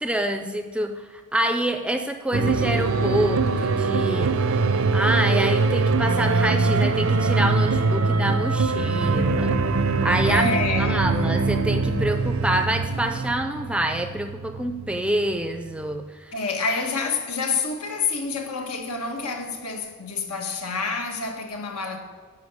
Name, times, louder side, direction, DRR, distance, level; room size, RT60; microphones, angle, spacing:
voice 1, 0.0-4.3 4.9-9.6 10.0-16.3, right 1 dB, 5° right, 0.4 m, -26 dB
sound 1, 2.3-16.0, right 3 dB, 70° right, 0.6 m, -23 dB
voice 2, 10.3-11.1 16.3-22.0, left 4 dB, 85° left, 1.5 m, -28 dB
10.5 x 5.4 x 8.0 m
head